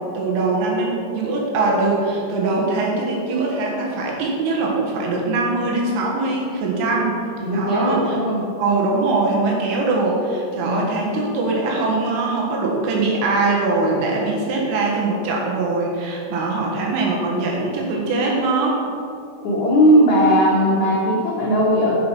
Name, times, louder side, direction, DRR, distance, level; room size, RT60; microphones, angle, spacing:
voice 1, 0.2-7.1 7.5-8.2 8.6-18.8, right 3 dB, 75° right, -2 dB, 3.9 m, -22 dB
voice 2, 7.4-8.4 10.6-10.9 19.4-22.0, equal, 75° left, -6 dB, 1.7 m, -18 dB
10.5 x 8.5 x 4.6 m, 2.4 s
omnidirectional pair, 5.9 m